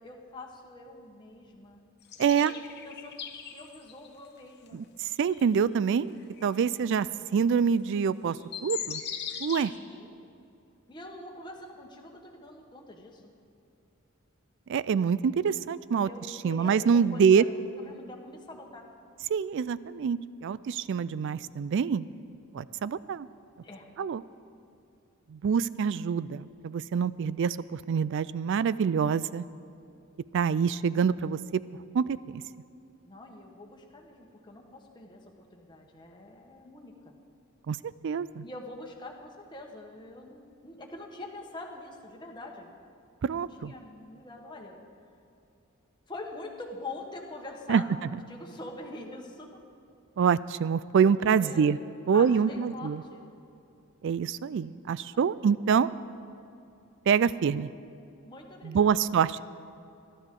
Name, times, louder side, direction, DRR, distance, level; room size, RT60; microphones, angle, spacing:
voice 1, 0.0-1.8 2.2-3.2 3.5-4.8 9.9-10.1 10.9-13.3 15.9-18.9 23.6-23.9 33.0-37.1 38.4-42.7 43.3-44.8 46.1-49.6 51.0-51.8 52.1-53.3 55.1-55.4 58.2-59.1, left 2 dB, 20° left, 0 dB, 1.2 m, -45 dB
sound 1, 2.1-4.1 4.7-4.8 5.3-5.4 6.4-6.5 7.9-8.0 8.3-9.7, left 8 dB, 50° left, 1.0 m, -38 dB
voice 2, 2.2-2.5 4.7-6.2 6.4-8.4 8.6-9.0 9.4-9.7 14.7-16.1 16.4-17.4 19.3-22.1 22.5-23.3 24.0-24.2 25.3-29.4 30.3-31.6 31.9-32.4 37.7-37.8 38.0-38.4 43.2-43.7 47.7-47.8 50.2-51.8 52.1-53.0 54.0-55.9 57.1-57.7 58.6-59.4, right 6 dB, 60° right, 17 dB, 0.3 m, -26 dB
21.0 x 12.5 x 3.8 m, 2.6 s
head